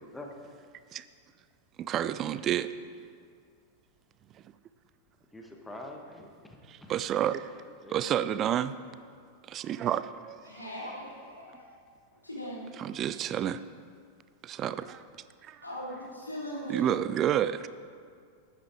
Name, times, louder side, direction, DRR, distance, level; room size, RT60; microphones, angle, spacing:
voice 1, 1.8-2.7 6.7-8.7 9.5-10.4 12.8-13.6 14.4-15.0 15.4-15.6 16.7-17.7, right 10 dB, 30° right, 14 dB, 0.3 m, -30 dB
voice 2, 5.3-6.9 7.8-8.5, left 1 dB, 10° left, 1 dB, 1.3 m, -45 dB
voice 3, 10.4-11.8 12.1-12.6 15.6-16.9, equal, 85° left, -4 dB, 2.9 m, -40 dB
12.0 x 9.3 x 4.6 m, 2.2 s
figure-of-eight pair, 90°, 0 cm